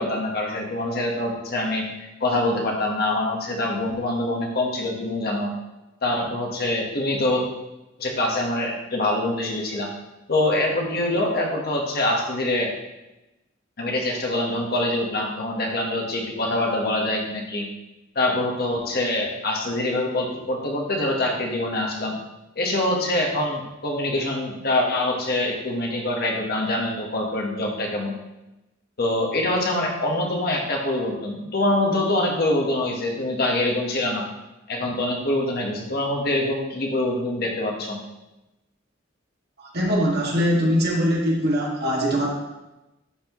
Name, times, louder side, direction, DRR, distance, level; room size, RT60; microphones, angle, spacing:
voice 1, 0.0-5.5 6.0-7.4 8.0-9.9 10.3-12.7 13.8-17.7 18.1-22.2 22.6-28.2 29.0-34.3 34.7-38.0, left 1 dB, 55° left, 0 dB, 1.3 m, -24 dB
voice 2, 39.6-42.3, equal, 60° right, -3 dB, 1.8 m, -22 dB
11.0 x 4.3 x 3.0 m, 0.98 s
head